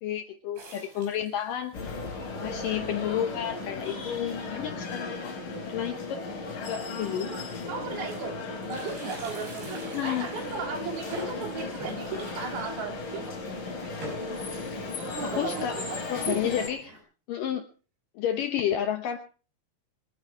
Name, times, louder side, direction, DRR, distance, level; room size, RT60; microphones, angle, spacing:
voice 1, 0.0-1.7 2.4-5.3 5.7-6.2 6.7-7.3 9.9-10.3 15.2-15.8 16.1-16.9 17.3-17.6 18.2-19.2, left 10 dB, 70° left, 2.1 m, -31 dB
sound 1, 0.6-1.7 2.3-2.4 2.6-2.7 3.5-3.6 4.0-4.2 4.5-4.6 5.9-6.0 6.7-6.8 7.1-8.3 8.6-17.0, equal, 80° right, 7.6 m, -46 dB
sound 2, 1.7-16.7, left 3 dB, 55° left, 5.8 m, -36 dB
voice 2, 7.2-8.4 8.7-13.5 15.1-16.0 16.3-16.6, right 6 dB, 65° right, 4.0 m, -36 dB
25.5 x 9.6 x 4.5 m
omnidirectional pair, 4.9 m